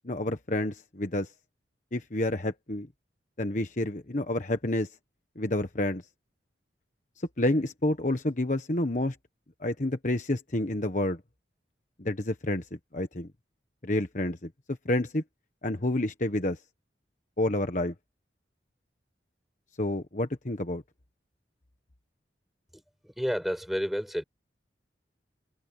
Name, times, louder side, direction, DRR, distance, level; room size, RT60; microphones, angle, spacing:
voice 1, 0.0-1.3 1.9-2.9 3.4-4.9 5.4-6.0 7.4-9.2 9.6-11.2 12.0-12.6 12.9-13.3 13.8-14.5 14.8-15.2 15.6-16.6 17.4-17.9 19.8-20.8, left 1 dB, 45° left, 1.3 m, -29 dB
voice 2, 22.7-24.2, equal, ahead, 5.5 m, -31 dB
head